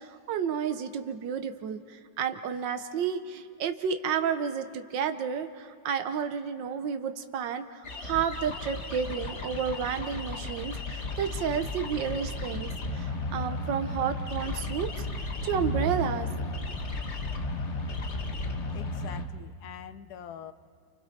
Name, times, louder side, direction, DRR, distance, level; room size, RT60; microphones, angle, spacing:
voice 1, 0.0-14.9 15.2-16.3, right 7 dB, 80° right, 8 dB, 1.6 m, -31 dB
sound 1, 7.8-19.3, left 2 dB, 40° left, 1.7 m, -34 dB
voice 2, 18.7-20.5, left 9 dB, 65° left, 11 dB, 1.3 m, -44 dB
29.5 x 29.5 x 4.2 m, 2.4 s
omnidirectional pair, 2.0 m